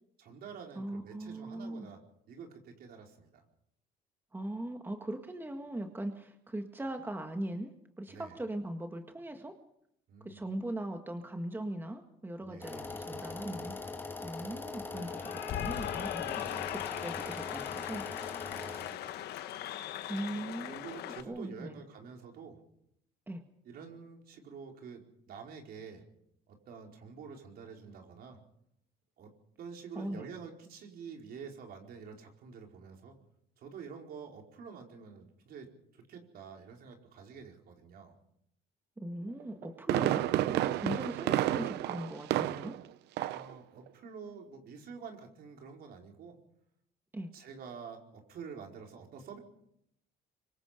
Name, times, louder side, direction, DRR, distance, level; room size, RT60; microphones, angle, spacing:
voice 1, 0.2-2.0 2.3-3.4 8.1-8.4 10.1-10.4 12.4-12.8 16.3-16.7 18.4-19.2 20.6-22.6 23.6-26.0 26.5-28.4 29.2-29.3 29.6-33.2 33.6-38.1 43.3-46.4 47.3-49.4, right 6 dB, 65° right, 2 dB, 4.7 m, -48 dB
voice 2, 0.8-1.9 4.3-9.5 10.2-13.8 14.2-16.4 16.7-18.1 20.1-21.8 23.3-23.4 30.0-30.3 39.0-42.8 47.1-47.3, right 1 dB, 10° right, 5 dB, 1.8 m, -40 dB
sound 1, 12.6-19.0, left 3 dB, 10° left, 3.0 m, -42 dB
Cheering / Applause, 14.9-21.2, left 12 dB, 75° left, 1.3 m, -39 dB
Fireworks, 39.4-42.9 43.2-43.5 43.9-44.0, right 13 dB, 80° right, 0.8 m, -30 dB
25.0 x 23.5 x 5.2 m, 0.74 s
cardioid pair, 110°, 17 cm